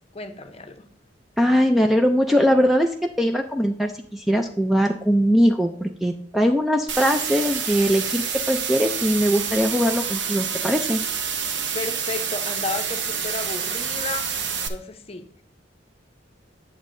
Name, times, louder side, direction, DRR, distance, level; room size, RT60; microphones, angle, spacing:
voice 1, 0.1-0.9 11.7-14.4 14.7-15.3, left 3 dB, 35° left, 8 dB, 0.7 m, -33 dB
voice 2, 1.4-11.0, equal, ahead, 4 dB, 0.4 m, -21 dB
sound 1, 6.9-14.7, right 7 dB, 70° right, 0.8 m, -28 dB
9.2 x 7.1 x 2.6 m, 0.63 s
head